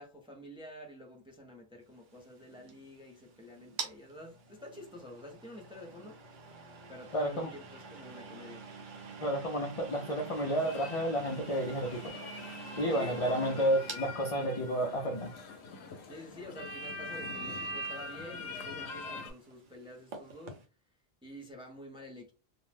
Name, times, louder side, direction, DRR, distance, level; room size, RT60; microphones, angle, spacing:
voice 1, 0.0-6.2 6.9-8.7 12.9-14.0 16.0-20.6 21.2-22.3, left 1 dB, 5° right, 0.4 m, -49 dB
sound 1, 1.9-20.7, right 4 dB, 50° right, 0.7 m, -48 dB
voice 2, 7.1-7.5 9.2-12.0 12.8-15.3, equal, 55° left, 0.4 m, -31 dB
sound 2, 9.7-19.3, left 2 dB, 75° left, 0.9 m, -43 dB
2.5 x 2.0 x 3.2 m
omnidirectional pair, 1.1 m